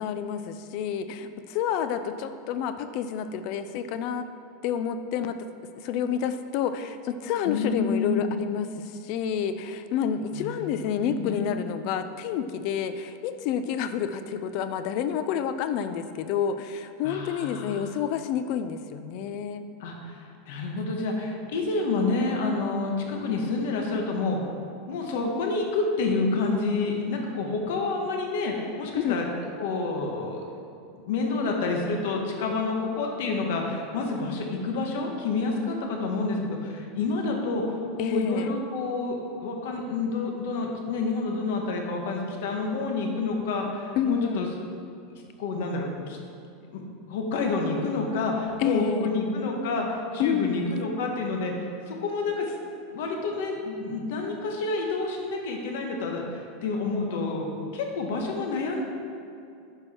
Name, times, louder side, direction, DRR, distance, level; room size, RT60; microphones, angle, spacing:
voice 1, 0.0-4.3 4.6-5.4 5.8-19.6 29.0-29.2 38.0-38.5 43.9-44.5 48.6-49.1 50.2-50.7, left 8 dB, 40° left, 10 dB, 0.4 m, -29 dB
voice 2, 7.4-8.3 10.3-11.5 17.0-17.9 19.8-24.4 24.9-29.2 29.6-30.4 30.9-44.5 45.1-46.2 46.7-46.8 47.1-52.5 52.9-58.8, left 3 dB, 60° left, 1 dB, 1.3 m, -29 dB
10.5 x 4.7 x 4.4 m, 2.5 s
supercardioid pair, 175°, 0 cm